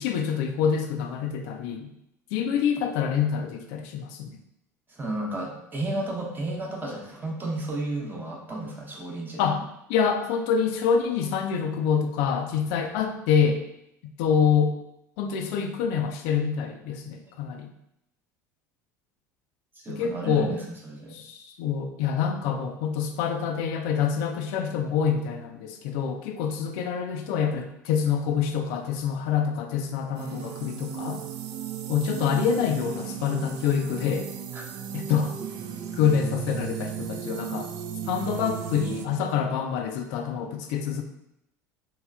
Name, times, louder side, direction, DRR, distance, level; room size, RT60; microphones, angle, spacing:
voice 1, 0.0-1.9 2.3-4.3 9.4-9.6 9.9-13.6 14.2-14.8 15.2-17.7 19.9-20.5 21.1-31.2 31.9-34.3 34.9-35.4 35.9-37.7 38.1-41.0, left 7 dB, 60° left, 5 dB, 0.3 m, -26 dB
voice 2, 5.0-9.5 19.8-21.2 34.5-34.6, right 2 dB, 20° right, -2 dB, 0.9 m, -32 dB
sound 1, 30.1-39.1, right 8 dB, 50° right, 0.4 m, -35 dB
3.0 x 3.0 x 2.3 m, 0.82 s
figure-of-eight pair, 70°, 10 cm